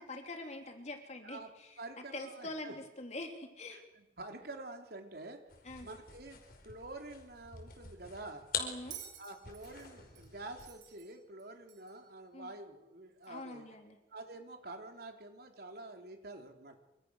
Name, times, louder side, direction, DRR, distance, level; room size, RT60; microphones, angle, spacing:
voice 1, 0.0-1.8 2.1-3.8 5.6-5.9 8.6-9.0 12.3-12.5 13.3-14.0, left 2 dB, 40° left, 4 dB, 3.6 m, -44 dB
voice 2, 1.8-2.7 3.7-5.4 5.8-8.5 9.2-13.7 14.1-16.8, right 2 dB, 55° right, 4 dB, 3.8 m, -48 dB
sound 1, 5.5-10.9, left 6 dB, 55° left, 5.0 m, -45 dB
Bell, 8.9-12.1 13.2-13.3, right 10 dB, 90° right, 5.1 m, -52 dB
27.0 x 26.0 x 6.6 m, 0.93 s
head